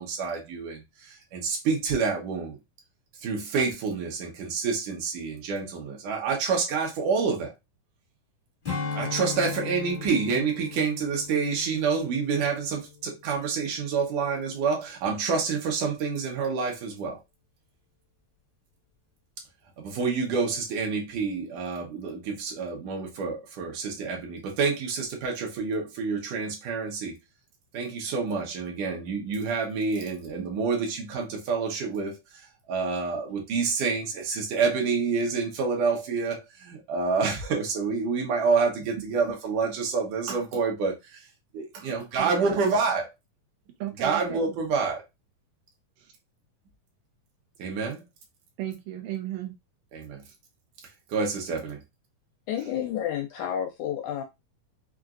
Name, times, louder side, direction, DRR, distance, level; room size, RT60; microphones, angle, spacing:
voice 1, 0.0-2.6 3.2-7.5 8.9-17.2 19.8-27.2 27.7-32.2 32.7-41.2 41.5-43.1 44.0-45.0 47.6-48.0 49.9-50.2 51.1-51.8, right 5 dB, 75° right, 2.4 m, -28 dB
Strum, 8.6-13.4 13.7-14.0, left 5 dB, 45° left, 0.6 m, -37 dB
voice 2, 42.2-42.6 43.8-44.2 44.5-44.6 46.0-46.1 48.6-49.6 50.2-50.3 52.6-52.7, right 13 dB, 90° right, 2.4 m, -35 dB
voice 3, 52.5-54.2, left 10 dB, 80° left, 1.7 m, -30 dB
5.7 x 2.5 x 2.4 m
omnidirectional pair, 3.8 m